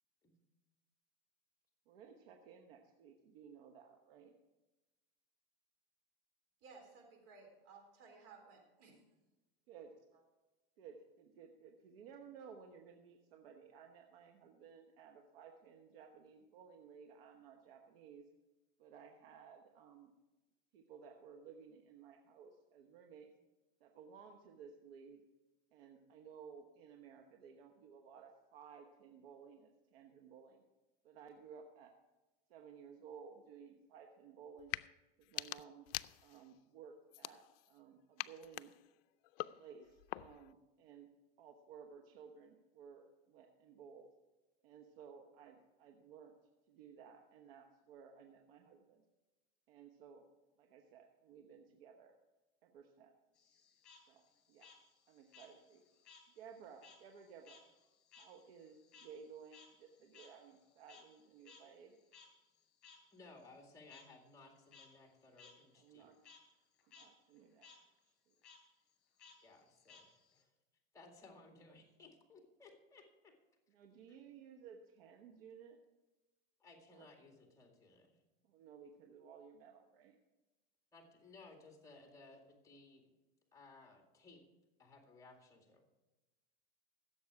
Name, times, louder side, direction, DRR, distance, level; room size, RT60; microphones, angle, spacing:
voice 1, 1.9-4.3 9.7-9.9 10.8-18.2 18.8-20.1 20.7-23.3 23.8-25.2 25.7-30.6 31.0-31.9 32.5-34.8 35.2-35.9 36.2-38.7 39.6-41.1 41.4-44.1 44.6-46.3 46.7-49.0 49.7-50.2 50.6-52.1 52.6-53.1 54.1-54.2 54.5-54.7 55.1-55.8 56.3-57.6 58.2-61.9 65.8-66.2 66.9-67.7 68.0-68.3 73.7-75.8 76.9-77.1 78.4-80.2, right 6 dB, 75° right, 4 dB, 1.2 m, -57 dB
voice 2, 6.6-9.0, right 4 dB, 55° right, 2 dB, 3.9 m, -58 dB
sound 1, 34.6-34.9 35.2-36.5 37.1-37.8 38.2-40.5, left 18 dB, 70° left, 0.5 m, -46 dB
Frog, 53.4-56.3 56.6-61.2 61.5-61.6 62.1-62.3 62.8-63.0 63.9-64.0 64.6-64.9 65.4-65.5 65.9-66.4 66.8-67.1 67.4-67.8 68.4-68.6 69.2-70.4, left 5 dB, 35° left, 3.9 m, -61 dB
voice 3, 63.1-66.1 69.4-70.5 70.9-73.4 74.1-74.2 76.6-78.2 80.9-83.1 83.5-84.4 84.8-85.9, left 3 dB, 10° left, 3 dB, 2.1 m, -60 dB
15.5 x 7.2 x 4.9 m, 1.1 s
hypercardioid pair, 110°, 30 cm